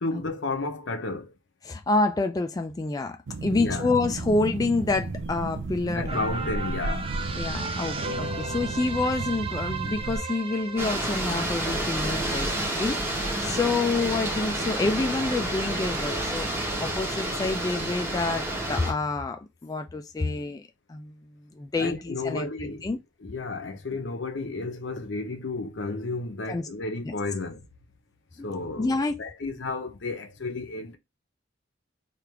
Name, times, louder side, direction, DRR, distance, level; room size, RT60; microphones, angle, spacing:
voice 1, 0.0-1.3 3.5-3.9 5.9-7.1 21.8-22.8 23.2-27.6 28.4-31.0, left 3 dB, 75° left, 0.8 m, -32 dB
voice 2, 1.6-6.2 7.3-16.5 16.8-20.6 20.9-23.0 26.5-26.7 27.0-27.1 28.4-28.5 28.8-29.2, left 3 dB, 20° left, 0.3 m, -28 dB
sound 1, 3.3-10.2, right 3 dB, 80° right, 0.5 m, -34 dB
sound 2, 6.1-12.7 13.1-13.2, right 4 dB, 30° right, 0.6 m, -35 dB
sound 3, 10.8-18.9, right 1 dB, 15° right, 0.9 m, -29 dB
3.3 x 2.5 x 4.4 m
head